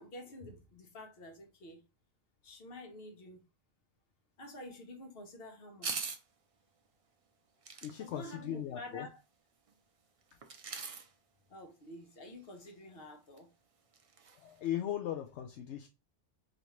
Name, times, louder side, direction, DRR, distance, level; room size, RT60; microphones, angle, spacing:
voice 1, 0.0-1.8 2.4-3.4 4.4-5.9 8.0-9.2 11.5-13.5, left 1 dB, 55° left, 1.1 m, -49 dB
sound 1, 5.8-6.2 7.6-7.9 10.4-11.1 12.7-12.8 13.0-13.1 13.4-13.5 13.9-14.4 14.6-14.7, right 5 dB, 55° right, 0.4 m, -40 dB
voice 2, 7.8-9.1 14.3-15.9, left 11 dB, 75° left, 0.8 m, -38 dB
5.0 x 2.6 x 3.0 m
omnidirectional pair, 1.2 m